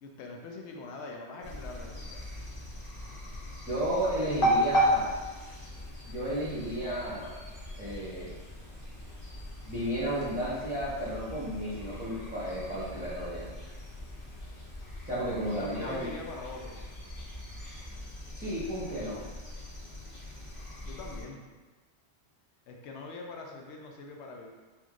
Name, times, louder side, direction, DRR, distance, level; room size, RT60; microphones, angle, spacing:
voice 1, 0.0-2.2 15.6-17.0 20.8-21.4 22.7-24.5, left 3 dB, 90° left, 1 dB, 0.9 m, -43 dB
sound 1, 1.4-21.2, equal, 60° left, 1.0 m, -36 dB
voice 2, 3.7-5.1 6.1-7.3 7.8-8.3 9.7-13.5 15.0-16.1 18.3-19.2, right 1 dB, 10° right, -11 dB, 0.6 m, -33 dB
4.4 x 2.6 x 2.4 m, 1.3 s
omnidirectional pair, 1.1 m